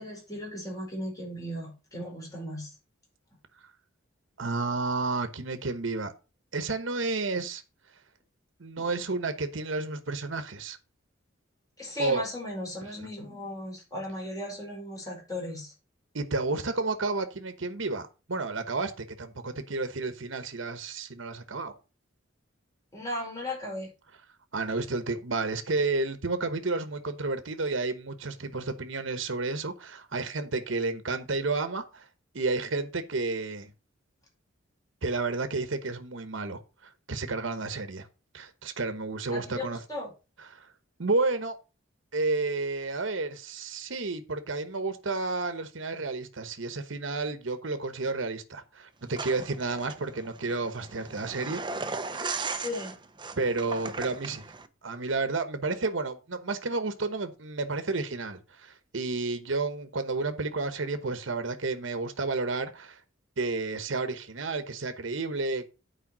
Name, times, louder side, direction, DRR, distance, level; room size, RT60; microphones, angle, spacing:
voice 1, 0.0-2.8 8.8-8.9 11.8-15.7 22.9-23.9 39.3-40.1 52.5-53.0, left 1 dB, 20° left, 4.9 m, -36 dB
voice 2, 4.4-6.1 6.5-7.6 8.6-10.8 12.0-12.2 16.1-18.0 18.3-21.7 24.5-32.0 32.3-33.7 35.0-36.6 37.1-38.1 38.3-39.8 40.5-40.7 41.0-41.6 42.1-51.6 52.1-52.4 53.4-54.4 54.8-63.0 63.4-65.7, right 3 dB, 70° right, 1.1 m, -31 dB
sound 1, 49.1-54.7, right 4 dB, 25° right, 0.7 m, -37 dB
8.9 x 4.9 x 6.0 m
head